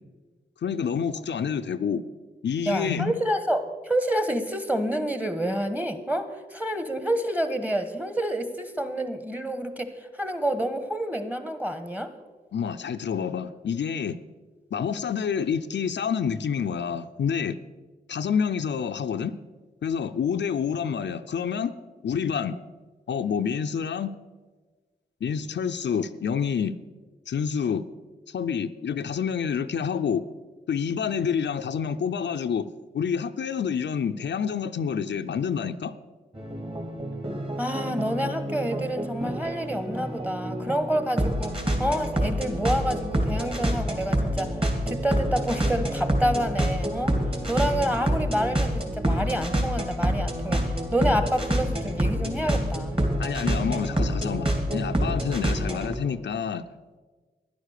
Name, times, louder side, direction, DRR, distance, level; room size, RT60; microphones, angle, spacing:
voice 1, 0.6-2.0 2.4-3.2 12.5-14.2 14.7-17.6 18.1-19.4 19.8-21.8 22.0-22.6 23.1-24.2 25.2-26.8 27.3-27.9 28.3-30.3 30.7-36.0 53.2-56.7, left 7 dB, 80° left, 8 dB, 0.5 m, -28 dB
voice 2, 2.7-12.1 37.6-41.5 41.8-44.5 44.9-47.2 47.5-53.0, equal, 10° right, 10 dB, 1.3 m, -28 dB
sound 1, 36.3-55.9, equal, 30° right, 2.8 m, -27 dB
11.5 x 10.5 x 6.6 m, 1.3 s
cardioid pair, 65°, 18 cm